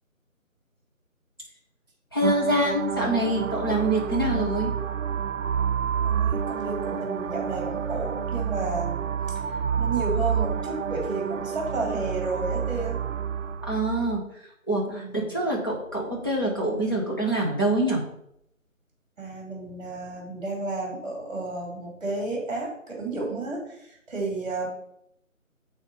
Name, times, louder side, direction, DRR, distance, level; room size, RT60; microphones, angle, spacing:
voice 1, 2.1-4.7 13.7-14.2 14.7-18.0, right 1 dB, 15° left, -4 dB, 0.8 m, -25 dB
sound 1, 2.2-14.2, right 7 dB, 65° right, 0.5 m, -29 dB
voice 2, 6.0-13.0 14.9-15.3 19.2-24.7, right 3 dB, 30° right, 0 dB, 2.8 m, -32 dB
7.2 x 4.1 x 5.2 m, 0.75 s
figure-of-eight pair, 165°, 41 cm